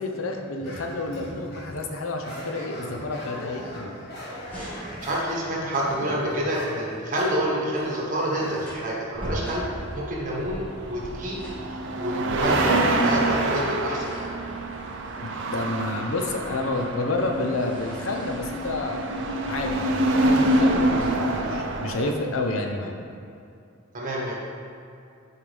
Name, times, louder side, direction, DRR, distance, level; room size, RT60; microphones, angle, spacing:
voice 1, 0.0-3.9 15.2-19.1 19.5-23.0, left 2 dB, 75° left, 3 dB, 0.7 m, -29 dB
sound 1, 0.6-1.8 2.2-8.7, equal, 55° left, 1.5 m, -40 dB
sound 2, 4.2-22.3, right 1 dB, 5° left, 1.5 m, -43 dB
voice 2, 5.0-9.7 9.9-11.4 11.7-14.4 23.9-24.4, equal, 40° right, -4 dB, 1.5 m, -28 dB
sound 3, 9.1-22.1, right 1 dB, 65° right, 0.6 m, -26 dB
8.7 x 4.6 x 3.4 m, 2.5 s
head